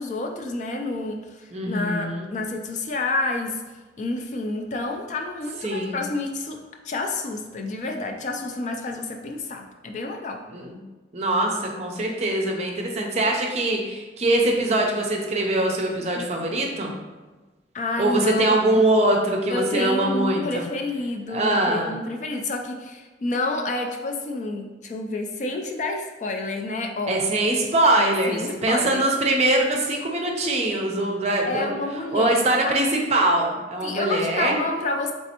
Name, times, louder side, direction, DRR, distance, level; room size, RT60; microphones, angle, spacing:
voice 1, 0.0-3.6 4.0-6.6 6.8-10.4 16.1-16.2 17.7-18.5 19.5-27.2 28.0-29.0 31.5-32.7 33.8-35.1, left 2 dB, 40° left, 3 dB, 0.3 m, -29 dB
voice 2, 1.5-2.3 5.6-6.0 10.5-10.8 11.1-16.9 18.0-20.6 21.3-21.9 27.1-31.7 32.1-34.6, right 1 dB, 35° right, 1 dB, 0.5 m, -23 dB
4.1 x 3.4 x 2.8 m, 1.2 s
head